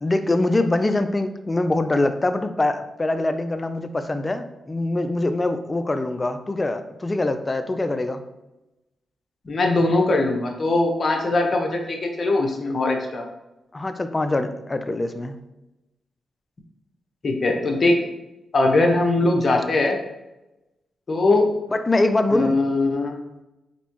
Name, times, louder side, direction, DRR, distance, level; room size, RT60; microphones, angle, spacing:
voice 1, 0.0-8.2 13.7-15.4 21.7-22.6, left 2 dB, 30° left, 9 dB, 0.4 m, -23 dB
voice 2, 9.4-13.2 17.2-18.0 18.5-20.0 21.1-21.5 22.3-23.1, left 2 dB, 50° left, 2 dB, 0.9 m, -21 dB
4.2 x 3.4 x 3.0 m, 0.97 s
supercardioid pair, 55°, 0 cm